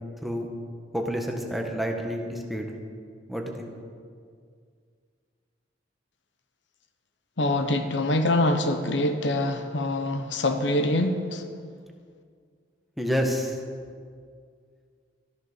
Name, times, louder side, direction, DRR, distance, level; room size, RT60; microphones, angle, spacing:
voice 1, 0.9-2.7 3.3-3.7 13.0-13.6, equal, ahead, 1.4 m, -28 dB
voice 2, 7.4-11.4, left 1 dB, 75° left, 1.0 m, -25 dB
14.0 x 10.5 x 6.7 m
head